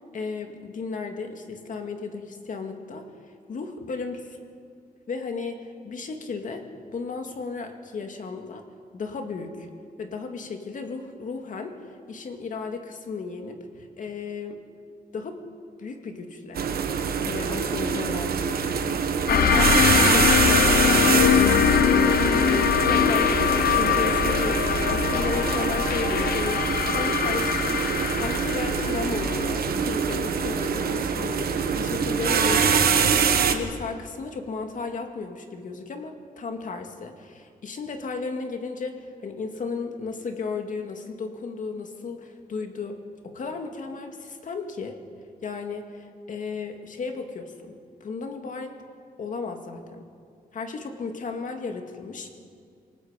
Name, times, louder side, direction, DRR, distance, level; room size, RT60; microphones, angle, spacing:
voice 1, 0.1-4.2 5.1-6.6 6.9-8.7 8.9-9.7 10.0-14.6 15.1-15.4 15.8-16.6 17.2-45.0 45.4-48.7 49.2-50.1 50.5-52.3, left 4 dB, 55° left, 5 dB, 2.2 m, -34 dB
sound 1, 16.5-33.5, right 6 dB, 75° right, 1.4 m, -25 dB
sound 2, 19.3-30.5, left 8 dB, 75° left, 0.9 m, -22 dB
27.5 x 19.0 x 5.2 m, 2.2 s
wide cardioid pair, 155°, 16 cm